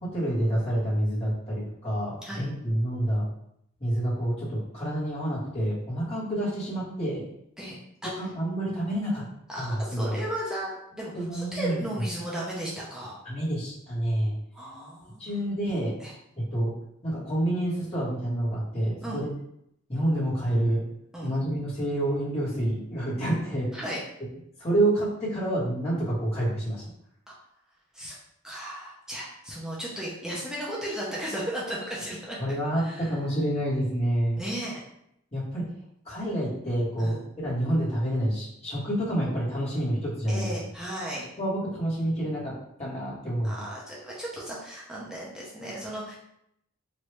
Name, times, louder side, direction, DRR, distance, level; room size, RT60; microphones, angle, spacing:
voice 1, 0.0-3.2 3.8-7.2 8.0-9.2 9.5-10.2 11.1-11.8 13.2-14.3 15.2-15.9 16.3-16.7 17.0-19.3 19.9-20.8 21.2-23.7 24.6-26.8 32.4-34.4 35.3-35.6 36.0-40.5 41.4-42.5 42.8-43.6, right 1 dB, 30° left, -9 dB, 1.5 m, -28 dB
voice 2, 9.5-13.2 14.5-15.3 16.0-16.1 19.0-19.2 21.1-21.3 23.7-24.0 27.9-28.2 28.4-32.4 32.8-33.1 34.4-34.8 37.0-37.2 40.3-41.3 43.4-46.2, right 1 dB, 5° right, -6 dB, 0.6 m, -35 dB
3.0 x 2.6 x 3.2 m, 0.76 s
head